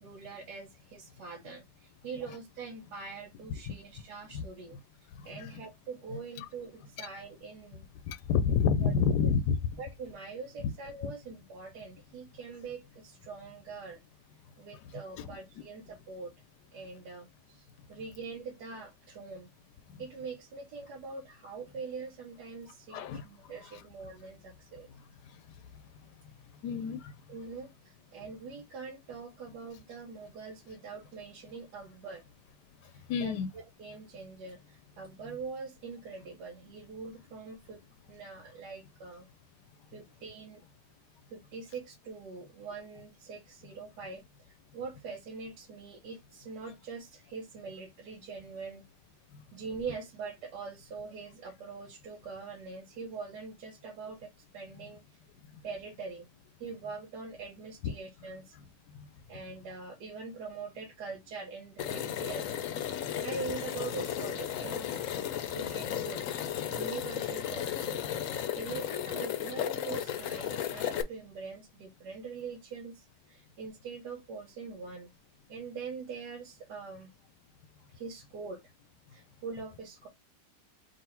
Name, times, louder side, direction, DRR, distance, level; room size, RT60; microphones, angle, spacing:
voice 1, 0.0-4.8 5.2-7.9 8.8-8.9 9.8-14.0 14.6-16.3 16.7-17.6 17.9-19.5 20.0-24.9 27.3-32.3 32.9-37.8 38.1-39.3 39.9-40.6 41.3-48.8 49.5-55.0 55.6-56.3 56.6-58.6 59.3-62.6 63.2-66.4 66.7-75.1 75.5-77.1 77.9-78.6 79.1-80.1, right 4 dB, 80° right, 1.4 m, -43 dB
voice 2, 4.3-4.8 5.1-5.6 6.4-6.5 8.0-9.6 10.6-10.7 11.0-11.1 14.7-15.4 17.8-17.9 19.9-20.0 22.9-23.8 24.9-26.2 26.5-27.3 32.8-33.5 49.3-49.4 55.5-55.6 57.8-57.9 58.5-59.1, left 6 dB, 85° left, 1.2 m, -32 dB
sound 1, 61.8-71.0, left 10 dB, 65° left, 0.9 m, -34 dB
3.9 x 2.6 x 4.2 m
omnidirectional pair, 1.8 m